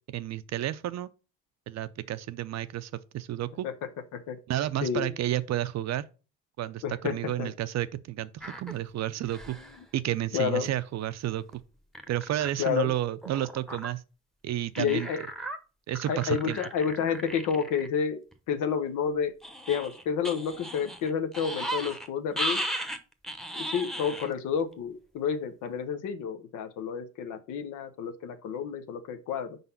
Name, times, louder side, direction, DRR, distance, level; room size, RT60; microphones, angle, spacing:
voice 1, 0.1-1.1 1.7-3.7 4.5-6.0 6.6-9.6 9.9-11.6 12.1-14.0 14.4-15.1 15.9-16.6, right 13 dB, 60° right, 0.5 m, -31 dB
voice 2, 3.6-4.4 4.8-5.1 6.8-7.5 9.5-9.6 10.3-10.7 12.6-12.9 14.8-15.2 16.1-18.2 18.5-19.3 19.7-22.6 23.5-29.6, left 7 dB, 90° left, 0.7 m, -30 dB
sound 1, 8.4-8.7 9.2-9.8 10.6-10.7 11.0-11.1 11.5-11.6 11.9-12.5 13.2-13.9 14.7-15.6 15.9-17.9 18.3-18.4 19.4-22.1 22.4-24.3 24.7-24.8, equal, ahead, 0.8 m, -36 dB
5.2 x 4.0 x 5.5 m
cardioid pair, 90°, 30 cm